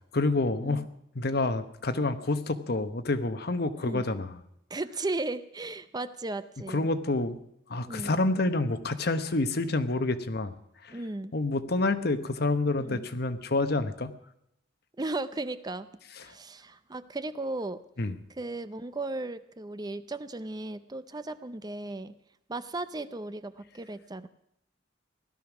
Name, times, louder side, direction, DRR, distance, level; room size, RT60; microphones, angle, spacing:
voice 1, 0.1-0.9 1.1-4.4 6.7-7.4 7.7-10.5 10.8-11.0 11.3-14.1 18.0-18.1, left 2 dB, 60° left, 10 dB, 1.0 m, -28 dB
voice 2, 3.8-4.1 4.7-6.9 7.9-8.2 10.9-11.3 12.8-13.1 15.0-15.9 16.2-17.8 18.3-22.1 22.5-24.3, right 2 dB, 20° right, 12 dB, 0.6 m, -36 dB
16.5 x 12.5 x 6.1 m, 0.78 s
head